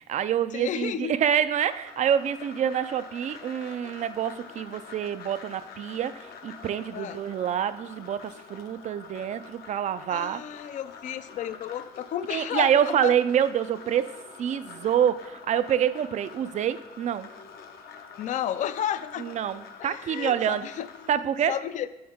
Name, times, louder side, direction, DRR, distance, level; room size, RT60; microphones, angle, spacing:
voice 1, 0.0-10.4 12.3-14.1 14.4-17.3 19.2-20.7 21.1-21.6, right 9 dB, 45° right, 14 dB, 0.4 m, -27 dB
voice 2, 0.5-1.2 6.9-7.2 10.1-13.1 18.2-19.3 19.8-20.9 21.5-21.9, left 10 dB, 50° left, 14 dB, 0.4 m, -32 dB
sound 1, 1.5-21.1, left 6 dB, 70° left, 0.8 m, -46 dB
9.2 x 6.2 x 3.6 m, 0.98 s
cardioid pair, 110°, 17 cm